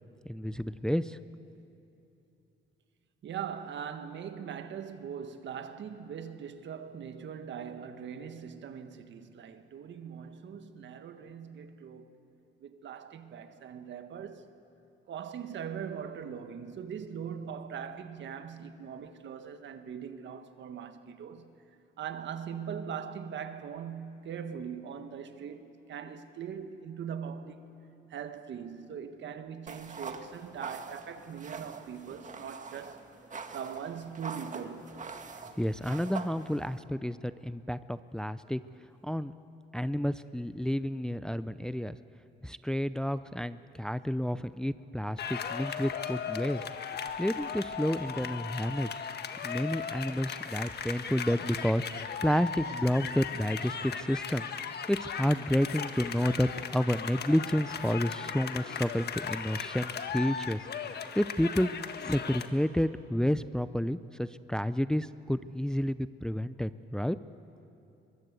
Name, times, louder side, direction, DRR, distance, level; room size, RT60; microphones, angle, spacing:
voice 1, 0.3-1.2 35.6-38.6 39.0-39.3 39.7-42.0 42.4-46.6 46.9-49.0 49.4-54.5 54.9-61.7 62.0-67.2, equal, 5° left, 0.5 m, -30 dB
voice 2, 3.2-12.2 12.6-14.5 15.1-21.6 22.0-27.8 28.1-33.0 33.5-35.0, right 7 dB, 65° right, 1.6 m, -41 dB
sound 1, 29.7-36.8, right 5 dB, 40° right, 1.9 m, -44 dB
sound 2, 45.2-62.5, left 7 dB, 55° left, 1.5 m, -37 dB
22.5 x 22.5 x 8.3 m
cardioid pair, 90°, 20 cm